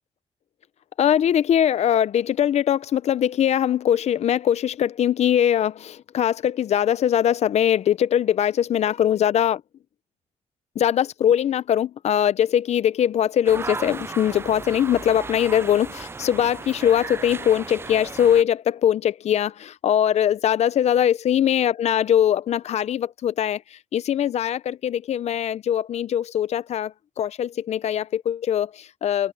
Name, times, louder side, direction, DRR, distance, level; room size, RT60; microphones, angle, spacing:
voice 1, 1.0-9.6 10.8-23.6 23.9-29.3, left 10 dB, 60° left, 0.7 m, -21 dB
sound 1, 13.5-18.4, right 4 dB, 20° right, 0.4 m, -35 dB
open air
cardioid pair, 105°, 12 cm